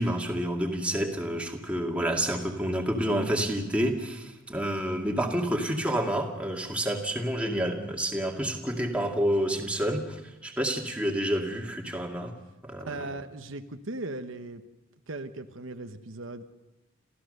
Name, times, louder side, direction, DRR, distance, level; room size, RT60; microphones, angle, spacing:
voice 1, 0.0-12.3 12.6-13.0, equal, 5° right, 1 dB, 2.3 m, -29 dB
voice 2, 12.8-14.6 15.1-16.4, right 2 dB, 75° right, 7 dB, 1.1 m, -38 dB
28.0 x 14.5 x 6.6 m, 1.0 s
head